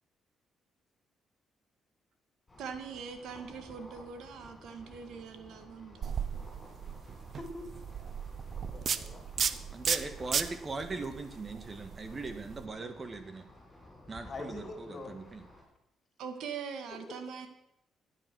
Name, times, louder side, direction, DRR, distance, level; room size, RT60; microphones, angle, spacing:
sound 1, 2.5-15.6, left 1 dB, 25° left, 7.2 m, -54 dB
voice 1, 2.6-6.3 16.2-17.5, right 6 dB, 80° right, 7 dB, 1.8 m, -42 dB
sound 2, 6.0-12.6, right 7 dB, 55° right, 0.8 m, -35 dB
voice 2, 7.4-7.7 8.6-9.2 14.2-15.1 16.9-17.2, left 3 dB, 40° left, 4 dB, 3.3 m, -44 dB
voice 3, 9.7-13.5 14.1-15.4, right 3 dB, 35° right, 8 dB, 1.6 m, -40 dB
13.5 x 9.9 x 6.2 m, 0.83 s
cardioid pair, 90°, 0 cm